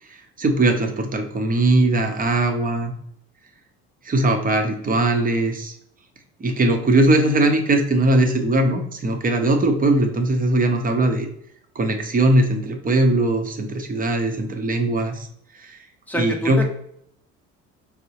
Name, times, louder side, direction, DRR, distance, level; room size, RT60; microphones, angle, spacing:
voice 1, 0.4-2.9 4.0-5.7 6.4-11.3 11.8-15.3 15.5-15.8 16.2-16.6, right 2 dB, 25° right, 4 dB, 0.7 m, -20 dB
voice 2, 16.1-16.6, left 1 dB, 5° left, 2 dB, 0.8 m, -26 dB
4.4 x 2.0 x 2.8 m, 0.70 s
supercardioid pair, 75°, 31 cm